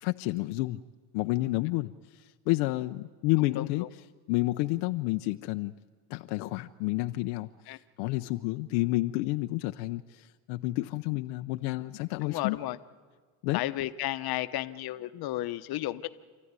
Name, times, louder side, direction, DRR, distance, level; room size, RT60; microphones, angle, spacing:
voice 1, 0.0-0.8 1.1-3.8 4.3-5.8 6.1-7.5 8.0-12.6 13.4-13.6, left 20 dB, 80° left, 7 dB, 0.7 m, -30 dB
voice 2, 3.5-3.9 7.7-7.8 12.2-12.8 13.5-16.1, left 15 dB, 55° left, 11 dB, 1.0 m, -33 dB
28.0 x 14.0 x 9.6 m, 1.5 s
supercardioid pair, 100°, 44 cm